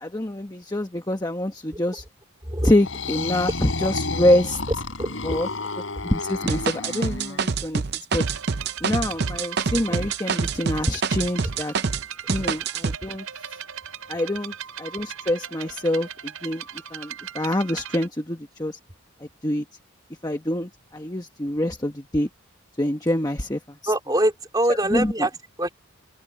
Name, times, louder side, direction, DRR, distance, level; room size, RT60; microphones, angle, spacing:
voice 1, 0.0-2.0 2.6-4.6 5.2-5.5 6.0-7.8 8.1-8.3 8.8-11.7 12.3-13.6 14.1-16.6 16.9-18.8 19.2-19.6 20.2-22.3 22.8-23.9 24.7-25.3, left 1 dB, 20° left, 1.1 m, -26 dB
sound 1, 2.7-7.5, left 3 dB, 65° left, 3.7 m, -31 dB
voice 2, 5.0-5.4 23.9-25.3 25.6-25.7, right 1 dB, 20° right, 3.7 m, -24 dB
sound 2, 6.5-12.0 12.3-13.0, right 5 dB, 50° right, 0.6 m, -26 dB
sound 3, 8.1-18.1, right 9 dB, 90° right, 5.5 m, -38 dB
head